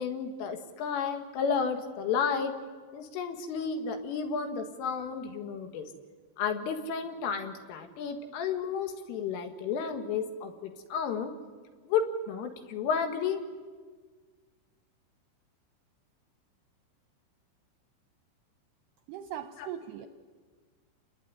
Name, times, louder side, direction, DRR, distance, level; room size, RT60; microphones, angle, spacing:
voice 1, 0.0-2.5 2.9-5.9 6.4-11.3 11.9-13.4 19.6-19.7, left 6 dB, 75° left, 6 dB, 4.3 m, -32 dB
voice 2, 19.1-20.1, right 10 dB, 75° right, 8 dB, 2.5 m, -39 dB
29.0 x 21.0 x 9.7 m, 1.5 s
omnidirectional pair, 5.9 m